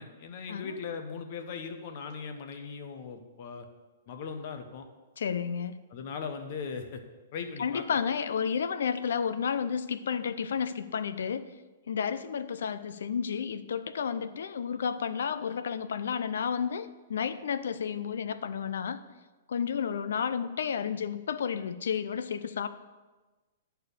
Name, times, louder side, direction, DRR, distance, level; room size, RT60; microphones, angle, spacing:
voice 1, 0.0-3.7 4.1-4.9 5.9-7.0 7.3-7.9, left 5 dB, 40° left, 6 dB, 1.0 m, -39 dB
voice 2, 5.2-5.8 7.6-11.5 11.9-19.0 19.5-22.7, left 7 dB, 75° left, 12 dB, 0.6 m, -31 dB
11.0 x 4.6 x 6.7 m, 1.2 s
hypercardioid pair, 170°, 0 cm